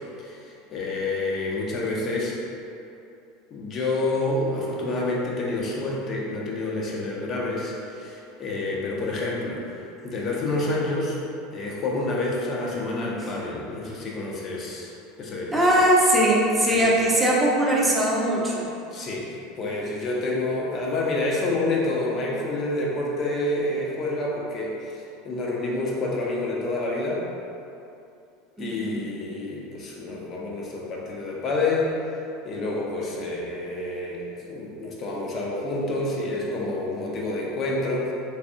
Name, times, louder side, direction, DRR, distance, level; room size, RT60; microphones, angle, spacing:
voice 1, 0.2-2.4 3.5-9.8 10.0-11.2 11.5-14.9 15.2-15.6 16.7-16.9 18.9-27.2 28.6-32.0 32.4-38.1, left 2 dB, 35° left, -3 dB, 0.7 m, -28 dB
voice 2, 15.5-18.7 28.6-29.1, right 1 dB, 10° right, -5 dB, 0.7 m, -20 dB
3.4 x 3.4 x 2.6 m, 2.7 s
figure-of-eight pair, 75°, 0 cm